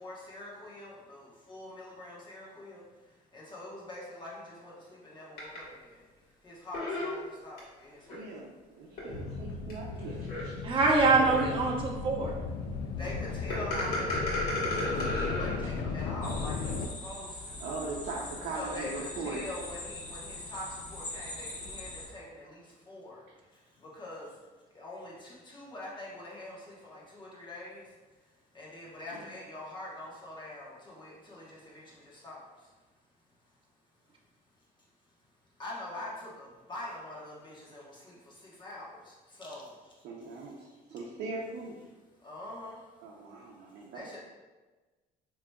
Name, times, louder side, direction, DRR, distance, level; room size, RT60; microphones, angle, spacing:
voice 1, 0.0-6.1 6.4-8.3 12.8-17.6 18.6-32.7 34.5-34.7 35.1-35.2 35.4-40.0 42.2-43.0 43.7-44.2, left 1 dB, 25° left, -5 dB, 1.2 m, -45 dB
sound 1, 5.4-5.6 6.7-7.6 8.1-8.2 9.0-9.1 9.7-9.8 10.3-10.4 11.2-11.7 13.5-15.6, left 2 dB, 65° left, 1.5 m, -32 dB
voice 2, 8.1-10.7 15.6-15.7 17.6-19.5 29.1-29.3 40.0-41.9 43.0-44.2, right 3 dB, 75° right, -3 dB, 0.6 m, -40 dB
sound 2, 9.1-16.9, left 4 dB, 85° left, 0.4 m, -36 dB
voice 3, 10.6-12.4, right 3 dB, 30° right, -2 dB, 0.7 m, -24 dB
sound 3, 16.2-22.1, left 2 dB, 45° left, 1.1 m, -42 dB
4.8 x 3.0 x 2.3 m, 1.3 s
cardioid pair, 110°, 17 cm